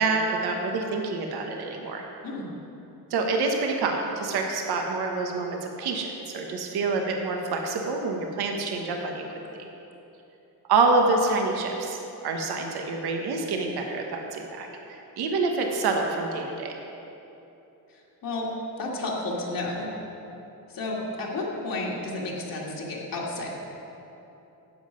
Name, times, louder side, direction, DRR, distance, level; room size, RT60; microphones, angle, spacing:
voice 1, 0.0-2.0 3.1-9.2 10.7-12.0 12.2-16.7, right 3 dB, 75° right, 2 dB, 1.2 m, -27 dB
voice 2, 17.9-18.5 18.8-19.9 20.7-23.5, left 2 dB, 60° left, -3 dB, 2.0 m, -32 dB
11.0 x 7.6 x 5.1 m, 3.0 s
cardioid pair, 105°, 38 cm